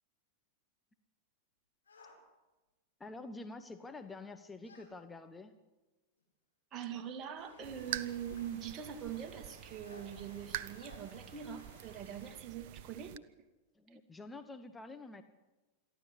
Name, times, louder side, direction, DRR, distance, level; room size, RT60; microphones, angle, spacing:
sound 1, 1.9-2.2 4.6-4.9 6.2-6.3 7.8-8.1 9.8-10.1 10.8-11.0, left 4 dB, 75° left, 6.8 m, -58 dB
voice 1, 3.0-5.6 13.7-15.2, left 3 dB, 10° left, 9 dB, 1.2 m, -48 dB
voice 2, 6.7-13.1, right 9 dB, 30° right, 6 dB, 2.3 m, -43 dB
sound 2, 7.4-12.4, left 6 dB, 55° left, 4.7 m, -60 dB
sound 3, 7.6-13.2, right 13 dB, 50° right, 0.8 m, -46 dB
27.5 x 11.5 x 8.3 m, 1.1 s
figure-of-eight pair, 90°, 0 cm